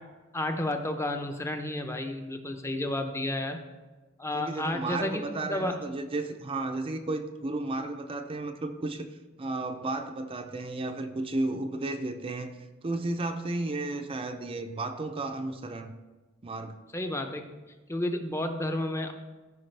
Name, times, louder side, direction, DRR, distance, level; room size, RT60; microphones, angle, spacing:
voice 1, 0.3-3.6 4.2-5.2 5.5-5.9 16.9-17.4 17.9-19.1, left 1 dB, 15° left, 6 dB, 0.6 m, -31 dB
voice 2, 4.3-9.1 9.4-12.6 12.8-15.9 16.4-16.8, right 2 dB, 25° right, 6 dB, 0.5 m, -33 dB
14.5 x 4.9 x 3.3 m, 1.2 s
head